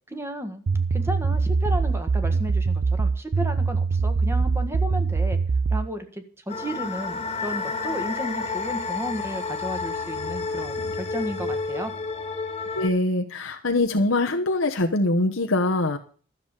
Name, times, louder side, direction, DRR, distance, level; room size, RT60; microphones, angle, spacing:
voice 1, 0.1-0.6 0.9-5.4 5.7-11.9, equal, 15° right, 7 dB, 1.6 m, -33 dB
sound 1, 0.7-5.9, right 4 dB, 70° right, 0.5 m, -23 dB
sound 2, 6.5-12.9, left 4 dB, 30° left, 1.8 m, -30 dB
voice 2, 12.7-16.0, left 2 dB, 75° left, 2 dB, 1.2 m, -23 dB
13.0 x 7.2 x 8.2 m, 0.41 s
head